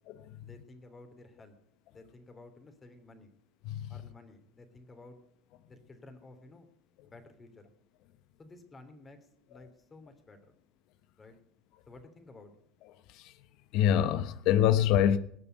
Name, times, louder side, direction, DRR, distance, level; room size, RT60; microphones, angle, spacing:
voice 1, 0.4-1.6 1.9-3.3 3.9-5.2 5.7-6.7 7.0-7.7 8.4-10.5 11.2-11.3 11.9-12.5, left 2 dB, 25° left, 3.1 m, -53 dB
voice 2, 13.7-15.2, left 10 dB, 65° left, 0.9 m, -25 dB
19.0 x 7.0 x 8.0 m
hypercardioid pair, 85°, 0 cm